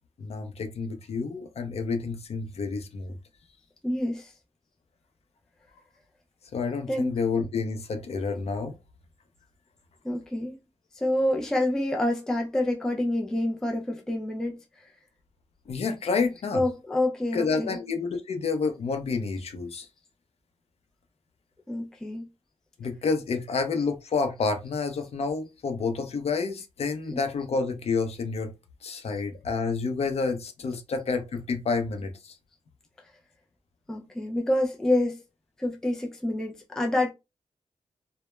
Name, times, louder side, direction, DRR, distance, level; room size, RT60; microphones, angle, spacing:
voice 1, 0.2-3.2 6.5-8.7 15.7-16.6 17.3-19.9 22.8-28.5 28.8-32.3, left 4 dB, 60° left, 0.5 m, -29 dB
voice 2, 3.8-4.3 6.9-7.2 10.0-10.6 10.9-14.9 16.5-17.8 21.7-22.3 27.1-27.2 29.1-29.2 33.9-35.2 35.6-37.1, left 1 dB, 5° left, 0.3 m, -27 dB
2.1 x 2.0 x 3.0 m
wide cardioid pair, 165°, 12 cm